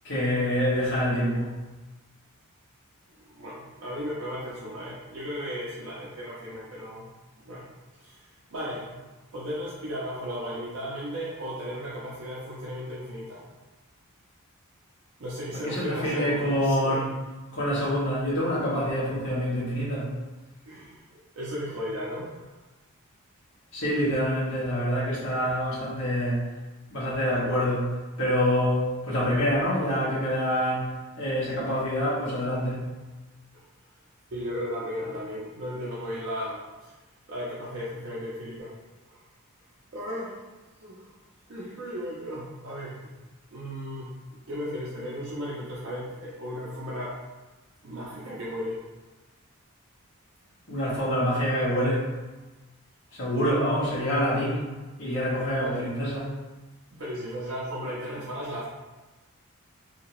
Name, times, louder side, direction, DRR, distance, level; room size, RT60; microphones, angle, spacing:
voice 1, 0.0-1.5 15.6-17.1 17.5-20.1 23.7-26.5 26.9-27.9 28.2-32.8 50.7-52.1 53.1-54.6 55.0-56.2, equal, 60° left, -8 dB, 1.3 m, -26 dB
voice 2, 3.2-7.1 7.4-7.7 8.0-9.1 9.3-13.4 15.2-17.0 20.7-21.0 21.4-22.4 33.5-33.6 34.3-36.9 37.3-38.7 39.1-39.2 39.9-40.4 40.8-41.1 41.5-43.1 43.5-44.2 44.5-47.2 47.8-48.8 55.6-55.8 56.9-58.7, equal, 55° right, -7 dB, 0.5 m, -35 dB
2.8 x 2.7 x 2.9 m, 1.2 s
head